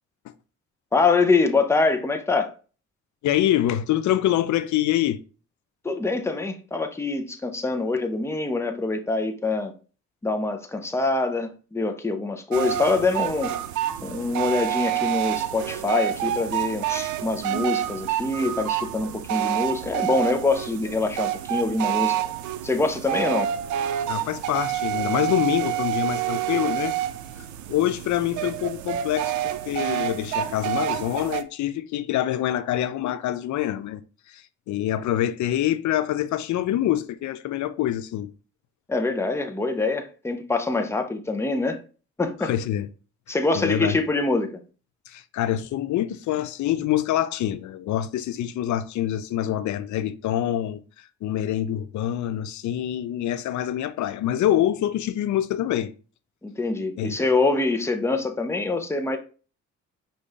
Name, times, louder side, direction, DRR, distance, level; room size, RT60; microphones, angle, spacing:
voice 1, 0.9-2.5 5.8-9.7 10.2-13.6 14.0-22.2 22.6-23.5 38.9-41.8 42.2-42.5 43.3-44.6 56.4-59.2, left 3 dB, 10° left, 0.7 m, -24 dB
voice 2, 3.2-5.2 24.1-27.0 27.7-34.0 34.3-38.3 42.4-42.9 43.3-44.0 45.1-50.8 51.2-55.9 57.0-57.2, left 12 dB, 70° left, 0.5 m, -25 dB
sound 1, 12.5-31.4, right 12 dB, 75° right, 0.5 m, -28 dB
5.4 x 2.6 x 3.3 m
cardioid pair, 90°, 30 cm